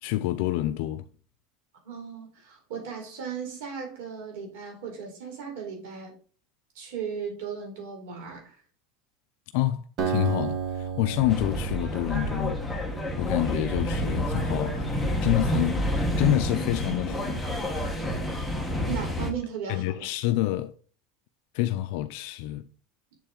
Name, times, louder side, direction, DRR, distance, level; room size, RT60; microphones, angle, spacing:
voice 1, 0.0-1.1 9.5-12.6 13.2-17.4 17.7-17.9 19.7-20.7 21.5-22.6, left 15 dB, 55° left, 0.4 m, -28 dB
voice 2, 1.8-6.2 6.7-8.6 18.9-20.1, right 7 dB, 65° right, 4.2 m, -36 dB
Acoustic guitar, 10.0-13.6, right 7 dB, 30° right, 1.2 m, -33 dB
sound 1, 11.2-19.3, equal, ahead, 1.2 m, -29 dB
7.6 x 7.2 x 3.8 m
supercardioid pair, 175°, 0 cm